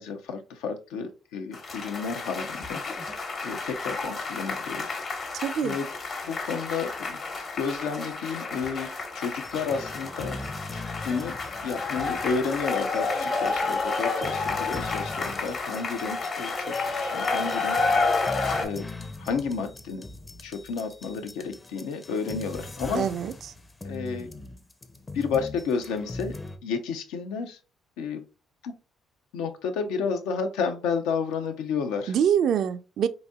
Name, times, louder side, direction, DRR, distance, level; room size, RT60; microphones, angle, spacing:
voice 1, 0.0-2.8 3.1-3.2 3.4-5.0 5.6-5.9 6.2-7.2 7.5-10.4 11.0-11.3 11.6-17.8 18.6-18.8 19.2-20.1 20.4-23.0 23.8-24.3 25.1-26.3 26.6-27.6 28.0-28.2 28.6-28.7 29.3-32.1, left 5 dB, 85° left, 0.5 m, -31 dB
sound 1, 1.5-18.7, left 3 dB, 50° left, 1.1 m, -30 dB
voice 2, 5.3-5.8 22.9-23.5 32.1-33.1, right 8 dB, 65° right, 0.3 m, -25 dB
sound 2, 9.4-26.6, left 2 dB, 25° left, 0.5 m, -41 dB
4.0 x 2.7 x 2.3 m
supercardioid pair, 70°, 0 cm